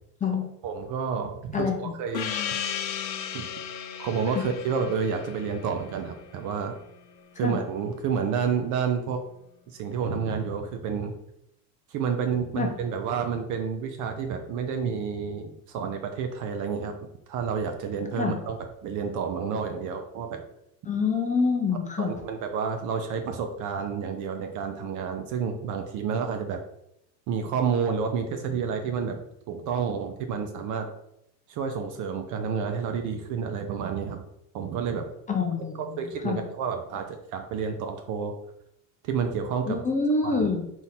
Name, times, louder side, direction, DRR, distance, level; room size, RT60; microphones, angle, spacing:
voice 1, 0.3-2.3 3.3-3.5 4.0-6.7 7.4-9.2 9.7-11.1 11.9-16.9 17.3-18.6 18.8-20.4 22.0-26.6 27.3-30.9 31.5-34.2 34.5-35.1 36.0-38.3 39.0-39.8 40.2-40.5, right 6 dB, 40° right, 5 dB, 0.6 m, -30 dB
Gong, 2.1-7.2, left 8 dB, 85° left, 0.6 m, -35 dB
voice 2, 20.9-22.1 35.3-36.4 39.7-40.6, left 4 dB, 15° left, 2 dB, 0.6 m, -26 dB
4.0 x 2.8 x 4.0 m, 0.80 s
hypercardioid pair, 75°, 50 cm